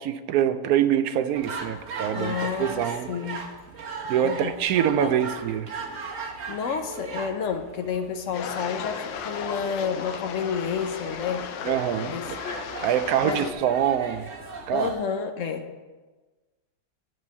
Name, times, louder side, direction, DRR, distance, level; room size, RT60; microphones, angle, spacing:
voice 1, 0.0-3.1 4.1-5.7 11.6-14.2 14.7-14.9, right 10 dB, 70° right, 10 dB, 0.9 m, -25 dB
sound 1, 1.3-14.9, right 4 dB, 45° right, 1.4 m, -38 dB
voice 2, 2.1-3.5 4.2-4.6 5.0-5.1 6.5-11.5 12.1-12.3 13.2-13.5 14.7-15.7, left 6 dB, 55° left, 7 dB, 0.9 m, -30 dB
sound 2, 8.3-13.5, left 8 dB, 75° left, 1.3 m, -35 dB
11.0 x 5.2 x 7.0 m, 1.3 s
omnidirectional pair, 2.0 m